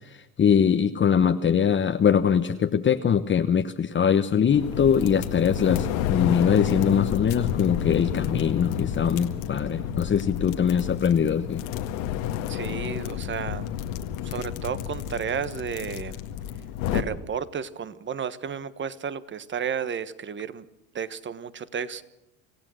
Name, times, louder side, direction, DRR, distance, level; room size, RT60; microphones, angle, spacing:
voice 1, 0.0-11.6, left 7 dB, 30° left, 7 dB, 1.1 m, -22 dB
sound 1, 4.5-17.0, left 10 dB, 80° left, 2.0 m, -30 dB
voice 2, 12.5-13.7 14.2-16.2 16.9-20.7 20.9-22.0, right 7 dB, 30° right, 15 dB, 1.3 m, -32 dB
26.5 x 16.0 x 6.4 m, 0.95 s
supercardioid pair, 100°, 39 cm